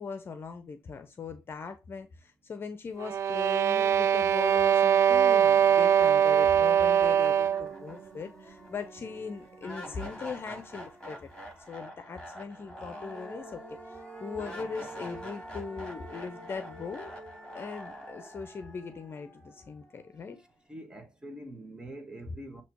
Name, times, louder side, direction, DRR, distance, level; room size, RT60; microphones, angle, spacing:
voice 1, 0.0-11.3 11.7-17.1 17.5-20.4, left 5 dB, 40° left, 0.9 m, -40 dB
sound 1, 3.0-7.7, right 9 dB, 60° right, 0.4 m, -22 dB
sound 2, 6.5-6.6 7.0-20.1, right 1 dB, 10° left, 4.8 m, -45 dB
voice 2, 20.4-22.6, right 1 dB, 15° right, 1.5 m, -45 dB
7.7 x 3.0 x 4.6 m
cardioid pair, 90°, 6 cm